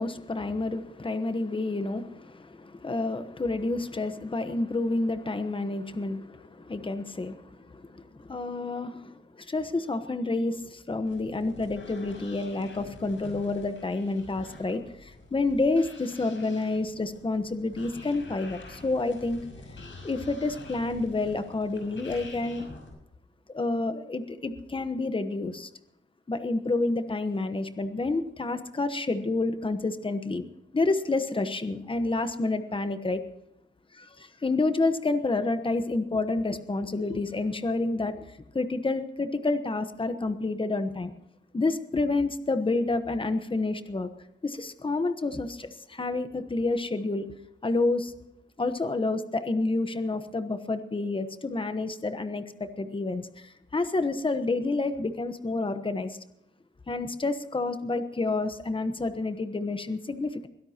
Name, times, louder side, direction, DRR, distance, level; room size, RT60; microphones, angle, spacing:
voice 1, 0.0-19.4 20.0-22.7 23.5-25.7 26.3-30.4 30.7-33.2 33.9-38.2 38.5-41.1 41.5-44.1 44.4-47.3 47.6-48.1 48.6-56.2 56.9-60.5, left 3 dB, 25° left, 10 dB, 1.1 m, -29 dB
sound 1, 11.0-22.9, left 2 dB, 80° left, 6.1 m, -47 dB
22.5 x 16.5 x 2.9 m, 0.83 s
wide cardioid pair, 150°, 20 cm